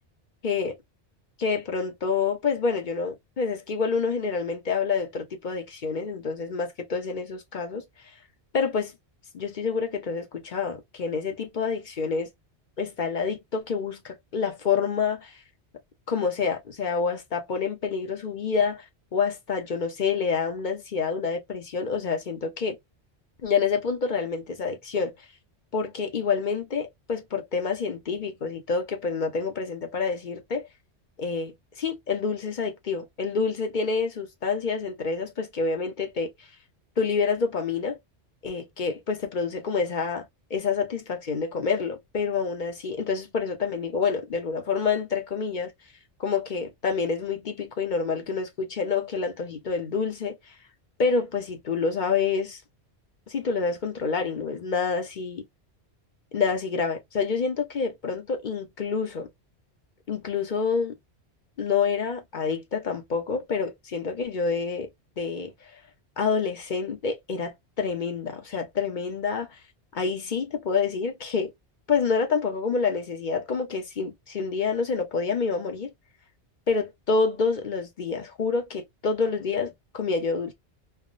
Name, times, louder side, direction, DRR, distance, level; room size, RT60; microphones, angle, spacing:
voice 1, 0.4-0.8 1.4-7.8 8.5-8.9 9.3-12.3 12.8-15.4 16.1-18.8 19.1-22.8 23.4-25.1 25.7-30.7 31.2-36.3 37.0-38.0 38.4-45.7 46.2-50.4 51.0-52.6 53.3-55.4 56.3-59.3 60.1-61.0 61.6-64.9 65.2-65.5 66.2-69.5 69.9-71.5 71.9-75.9 76.7-80.5, left 5 dB, 50° left, 0.8 m, -27 dB
3.4 x 2.1 x 2.5 m
omnidirectional pair, 1.1 m